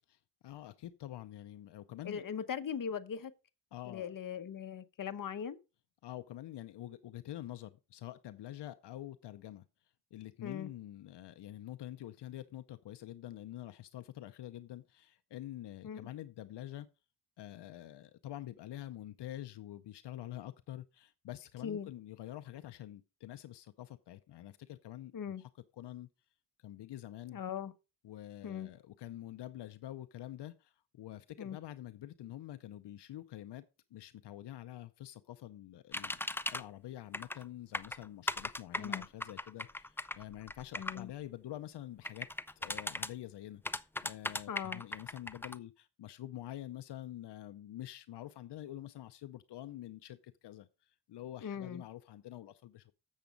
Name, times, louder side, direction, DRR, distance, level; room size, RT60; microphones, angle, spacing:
voice 1, 0.4-2.2 3.7-4.1 6.0-9.6 10.1-16.9 17.4-26.1 26.6-27.4 28.0-33.6 33.9-42.3 42.6-52.9, left 13 dB, 85° left, 0.6 m, -47 dB
voice 2, 2.0-3.3 3.9-5.6 10.4-10.7 15.8-16.0 21.6-21.9 25.1-25.4 27.3-27.7 28.4-28.7 31.4-31.6 38.8-39.1 40.8-41.1 44.5-44.8 51.4-51.8, left 7 dB, 55° left, 0.9 m, -40 dB
sound 1, 35.9-36.6 37.1-37.4 37.7-41.0 42.0-43.1 43.7-45.6, left 2 dB, 5° left, 0.3 m, -38 dB
7.4 x 6.9 x 5.2 m
cardioid pair, 90°, 40 cm